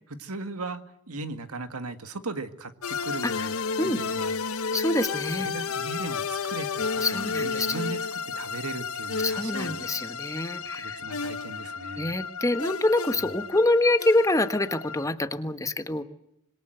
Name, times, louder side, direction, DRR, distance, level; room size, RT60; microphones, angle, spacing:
voice 1, 0.1-3.5 3.8-4.4 5.4-9.8 10.7-12.1, right 3 dB, 85° right, 9 dB, 2.0 m, -38 dB
sound 1, 2.8-15.0, left 5 dB, 70° left, 0.9 m, -32 dB
voice 2, 4.7-5.5 7.0-7.8 9.2-11.0 12.0-16.0, left 2 dB, 15° left, 9 dB, 1.5 m, -26 dB
26.5 x 22.0 x 8.1 m, 0.80 s
head